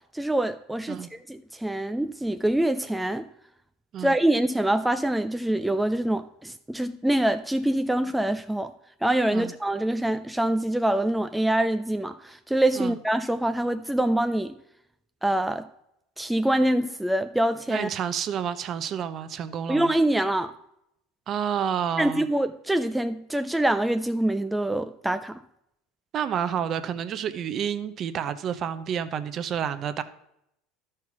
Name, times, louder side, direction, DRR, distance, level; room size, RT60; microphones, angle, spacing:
voice 1, 0.1-3.3 4.0-8.7 9.0-14.5 15.2-15.7 16.2-17.9 19.7-20.5 22.0-25.4, right 1 dB, 5° right, 9 dB, 0.3 m, -25 dB
voice 2, 17.7-19.9 21.3-22.3 26.1-30.0, right 8 dB, 40° right, 12 dB, 0.7 m, -29 dB
11.5 x 4.5 x 6.0 m, 0.79 s
supercardioid pair, 110°, 0 cm